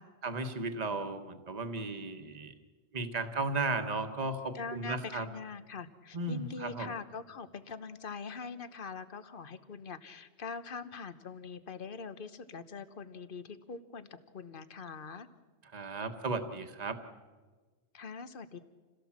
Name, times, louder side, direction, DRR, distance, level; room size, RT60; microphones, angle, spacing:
voice 1, 0.2-2.5 2.9-5.3 6.1-6.9 15.7-17.0, right 3 dB, 35° right, 7 dB, 1.5 m, -35 dB
voice 2, 4.5-14.1 14.3-15.3 17.9-18.6, left 5 dB, 50° left, 12 dB, 1.2 m, -43 dB
28.0 x 17.0 x 7.4 m, 1.4 s
omnidirectional pair, 1.2 m